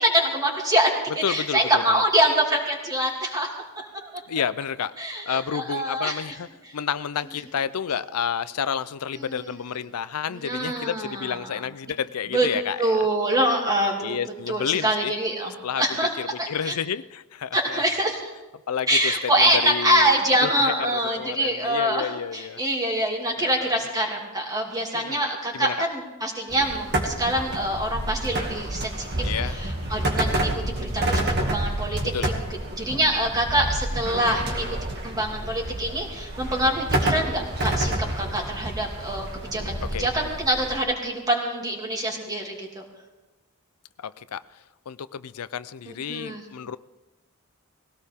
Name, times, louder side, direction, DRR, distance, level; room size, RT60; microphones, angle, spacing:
voice 1, 0.0-3.5 3.8-4.1 5.0-6.4 6.6-6.7 9.1-9.5 10.3-11.6 12.3-12.5 12.8-14.2 14.5-16.8 17.5-18.3 18.9-32.3 32.7-34.6 35.0-42.8 45.9-46.4, right 1 dB, 15° right, 0 dB, 2.7 m, -25 dB
voice 2, 1.2-2.0 4.3-4.9 5.3-6.5 6.7-13.0 14.0-15.1 15.6-15.8 16.2-17.8 18.7-19.1 19.4-20.2 20.4-22.6 23.4-23.5 24.9-25.2 25.5-25.7 29.2-29.6 32.1-32.3 39.8-40.0 44.0-44.4 44.9-46.8, left 7 dB, 85° left, 15 dB, 0.5 m, -30 dB
sound 1, 26.5-40.8, right 1 dB, 50° right, 2.2 m, -29 dB
20.0 x 17.0 x 3.6 m, 1.2 s
head